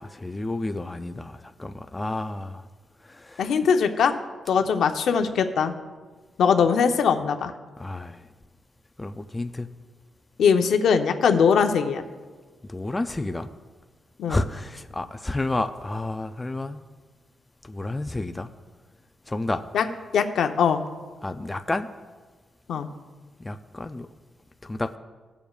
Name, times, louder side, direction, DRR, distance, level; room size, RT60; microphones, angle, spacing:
voice 1, 0.0-2.7 3.0-3.6 7.8-8.3 9.0-9.7 12.6-13.5 14.3-16.8 17.6-18.5 19.3-19.6 21.2-21.9 23.4-24.1 24.6-25.0, left 2 dB, 15° left, 8 dB, 0.3 m, -30 dB
voice 2, 3.4-4.1 4.5-5.7 6.4-7.5 10.4-12.0 14.2-14.4 19.7-19.8 20.1-20.8 22.7-22.9, left 6 dB, 75° left, 6 dB, 0.7 m, -21 dB
20.0 x 7.0 x 2.4 m, 1.4 s
wide cardioid pair, 165°, 0 cm